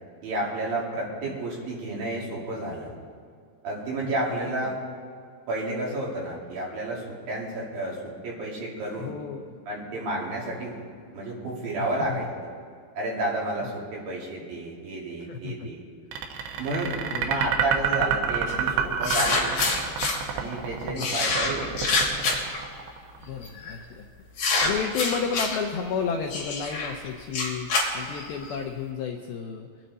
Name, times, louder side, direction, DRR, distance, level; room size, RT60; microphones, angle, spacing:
voice 1, 0.2-2.9 3.6-4.7 5.5-9.1 9.7-10.8 11.1-12.5 13.0-15.8 16.6-16.9 17.2-19.9 20.3-22.0, right 1 dB, 55° right, -4 dB, 3.9 m, -31 dB
voice 2, 9.0-9.4 11.8-12.3 15.2-15.7 17.1-17.4 20.9-21.2 23.2-24.1 24.3-29.7, left 6 dB, 85° left, 3 dB, 2.1 m, -32 dB
sound 1, 16.1-23.2, right 7 dB, 85° right, 3.2 m, -28 dB
sound 2, 18.5-18.6 19.0-20.2 21.0-22.6 23.4-23.7 24.4-25.6 26.3-28.5, left 3 dB, 45° left, 3.6 m, -26 dB
23.5 x 9.1 x 4.1 m, 2.1 s
omnidirectional pair, 5.2 m